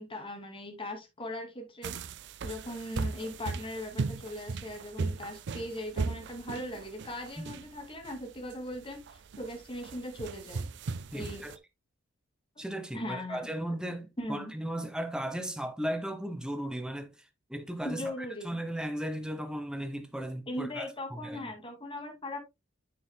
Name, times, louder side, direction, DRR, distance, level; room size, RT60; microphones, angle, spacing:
voice 1, 0.0-2.0 2.4-10.7 11.1-11.4 12.9-13.5 14.2-14.4 17.8-18.6 20.5-22.4, left 1 dB, 25° left, 2.4 m, -39 dB
sound 1, 1.8-11.6, right 4 dB, 60° right, 0.4 m, -38 dB
voice 2, 11.1-11.5 12.6-21.5, right 1 dB, 5° right, 1.0 m, -36 dB
9.6 x 7.0 x 2.2 m
head